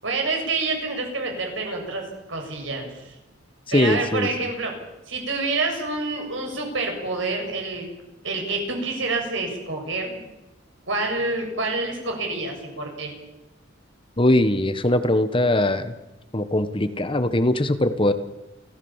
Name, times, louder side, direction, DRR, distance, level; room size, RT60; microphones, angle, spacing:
voice 1, 0.0-3.2 3.7-4.8 5.1-7.9 8.2-10.2 10.9-13.1, right 3 dB, 70° right, 2 dB, 7.1 m, -27 dB
voice 2, 3.7-4.3 14.2-15.9 16.3-18.1, left 1 dB, 25° left, 10 dB, 1.3 m, -21 dB
30.0 x 14.5 x 7.3 m, 1.0 s
head